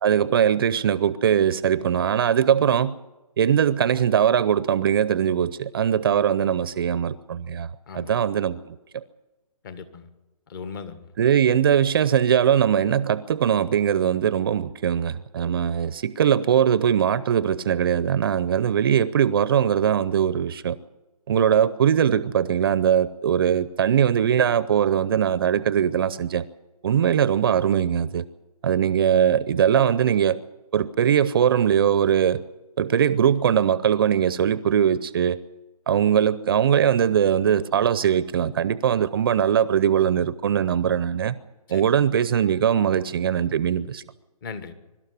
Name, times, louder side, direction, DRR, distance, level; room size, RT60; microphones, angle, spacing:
voice 1, 0.0-3.0 3.4-9.0 11.2-20.8 21.3-26.4 26.8-28.2 28.6-30.4 30.7-32.4 32.8-35.4 35.9-41.4 41.7-44.0, right 8 dB, 35° right, 0.7 m, -21 dB
voice 2, 7.9-8.2 9.6-10.1 10.5-11.1 41.7-41.8 44.4-44.7, left 5 dB, 35° left, 1.7 m, -38 dB
23.5 x 12.5 x 9.6 m
figure-of-eight pair, 150°, 20 cm